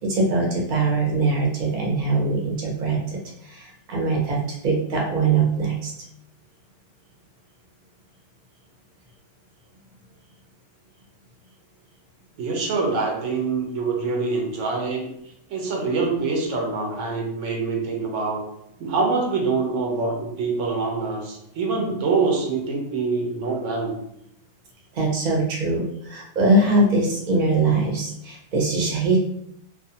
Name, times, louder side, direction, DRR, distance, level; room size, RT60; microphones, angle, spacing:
voice 1, 0.0-4.4 4.6-5.9 24.9-29.2, right 3 dB, 45° right, -3 dB, 0.7 m, -22 dB
voice 2, 12.4-15.1 15.5-18.4 18.8-24.0, right 4 dB, 85° right, 0 dB, 1.0 m, -25 dB
2.4 x 2.3 x 2.7 m, 0.75 s
omnidirectional pair, 1.2 m